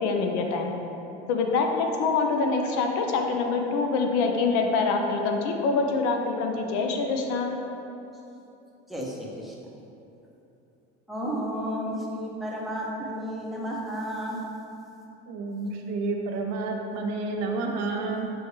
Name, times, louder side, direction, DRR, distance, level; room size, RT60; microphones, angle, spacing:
voice 1, 0.0-0.7 1.3-7.5, left 4 dB, 60° left, 3 dB, 0.5 m, -25 dB
voice 2, 8.9-9.5 11.1-14.4, equal, ahead, -4 dB, 0.6 m, -32 dB
voice 3, 15.3-18.3, right 3 dB, 50° right, 2 dB, 0.5 m, -30 dB
6.2 x 2.2 x 3.1 m, 2.9 s
supercardioid pair, 100°, 33 cm